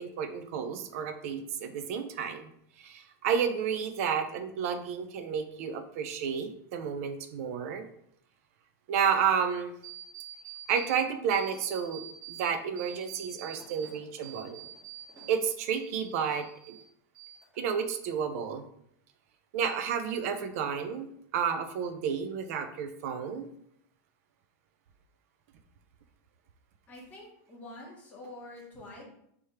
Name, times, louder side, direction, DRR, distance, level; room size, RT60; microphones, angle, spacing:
voice 1, 0.0-2.5 2.8-7.8 8.9-9.7 10.7-14.6 15.3-16.8 17.6-18.6 19.5-23.5, right 7 dB, 50° right, 8 dB, 0.4 m, -31 dB
sound 1, 9.8-11.0 11.3-12.4 12.8-15.4 15.7-16.8 17.1-17.8, right 11 dB, 10° right, 1.8 m, -46 dB
voice 2, 26.9-29.0, left 2 dB, 15° left, -4 dB, 1.3 m, -46 dB
3.4 x 3.2 x 4.2 m, 0.71 s
supercardioid pair, 170°, 10 cm